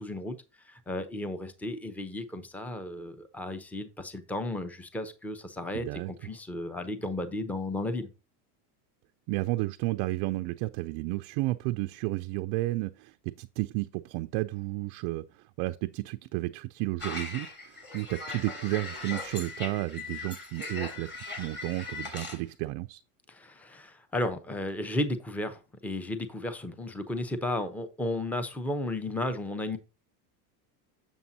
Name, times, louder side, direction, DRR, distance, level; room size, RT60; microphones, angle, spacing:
voice 1, 0.0-8.1 23.3-29.8, left 1 dB, 5° left, 0.6 m, -34 dB
voice 2, 5.7-6.1 9.3-23.0, right 20 dB, 50° right, 0.4 m, -32 dB
sound 1, 17.0-22.4, left 3 dB, 20° left, 2.2 m, -39 dB
7.1 x 7.1 x 2.7 m
supercardioid pair, 120°, 47 cm